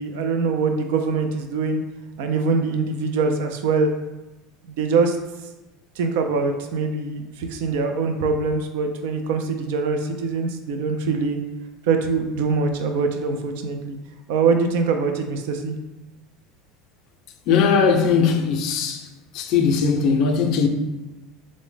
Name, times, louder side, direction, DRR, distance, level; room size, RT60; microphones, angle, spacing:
voice 1, 0.0-1.8 2.2-3.9 4.7-5.2 6.0-11.4 11.9-14.0 14.3-15.7, right 4 dB, 80° right, 0.3 m, -23 dB
voice 2, 17.5-19.1 19.3-20.7, left 5 dB, 55° left, 0.4 m, -19 dB
3.8 x 2.0 x 3.2 m
supercardioid pair, 125°, 0 cm